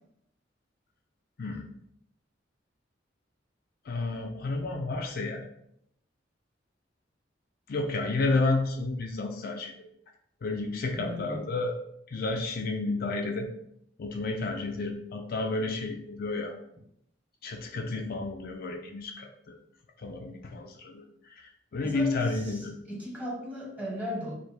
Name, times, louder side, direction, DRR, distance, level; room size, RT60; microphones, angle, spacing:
voice 1, 3.8-5.4 7.7-9.9 10.4-11.8 12.1-13.5 14.0-16.6 17.4-19.6 20.0-22.7, left 3 dB, 55° left, 3 dB, 0.4 m, -31 dB
voice 2, 10.9-11.5 21.8-24.3, equal, 10° right, -3 dB, 1.1 m, -37 dB
3.3 x 2.6 x 4.2 m, 0.73 s
head